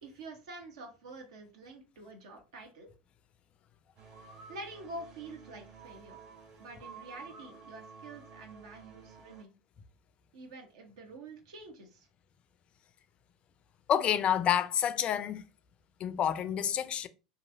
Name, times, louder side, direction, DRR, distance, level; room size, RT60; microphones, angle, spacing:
voice 1, 0.0-2.9 4.5-6.2 6.6-9.5 10.3-12.1, right 2 dB, 75° right, 1.0 m, -47 dB
sound 1, 4.0-9.4, right 5 dB, 50° right, 1.5 m, -51 dB
voice 2, 13.9-15.4 16.0-17.1, left 9 dB, 40° left, 0.4 m, -28 dB
2.9 x 2.6 x 2.6 m
hypercardioid pair, 85°, 3 cm